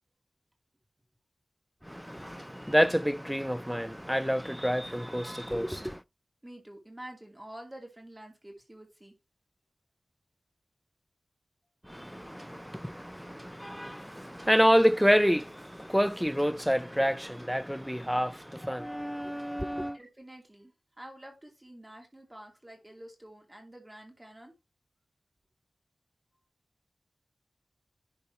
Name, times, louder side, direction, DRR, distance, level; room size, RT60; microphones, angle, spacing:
voice 1, 1.9-6.0 11.9-20.0, equal, ahead, 0.4 m, -28 dB
voice 2, 6.4-9.1 19.9-20.7 21.0-24.5, right 1 dB, 20° right, 2.6 m, -48 dB
11.0 x 4.0 x 4.6 m
wide cardioid pair, 100°, 0 cm